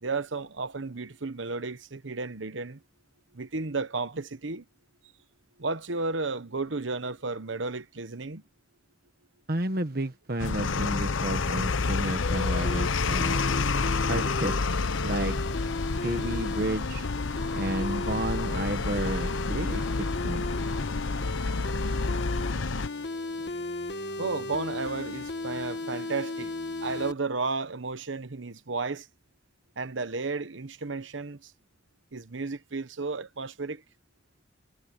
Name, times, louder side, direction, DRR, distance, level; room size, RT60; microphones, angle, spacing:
voice 1, 0.0-2.8 3.3-4.6 5.6-8.4 24.2-26.5 26.8-29.1 29.8-31.5 32.1-33.8, right 3 dB, 75° right, 1.1 m, -33 dB
voice 2, 9.5-13.4 14.1-14.6 15.0-15.3 16.0-17.1 17.5-19.9 20.2-20.5, right 1 dB, 50° right, 1.4 m, -31 dB
sound 1, 10.4-22.9, left 4 dB, 85° left, 0.8 m, -29 dB
sound 2, 12.2-27.1, left 2 dB, 60° left, 1.5 m, -35 dB
head